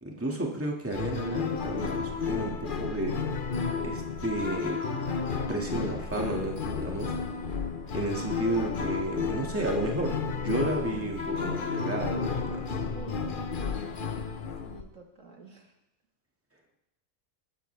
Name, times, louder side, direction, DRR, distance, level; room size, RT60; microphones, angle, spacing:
voice 1, 0.0-3.6 3.8-4.8 5.5-7.1 7.9-12.8, right 2 dB, 10° right, 0 dB, 2.0 m, -32 dB
sound 1, 0.9-14.8, left 5 dB, 40° left, 1.0 m, -32 dB
voice 2, 12.9-13.4 14.6-15.7, right 5 dB, 60° right, 2 dB, 2.0 m, -48 dB
20.5 x 13.5 x 3.4 m, 0.84 s
omnidirectional pair, 1.5 m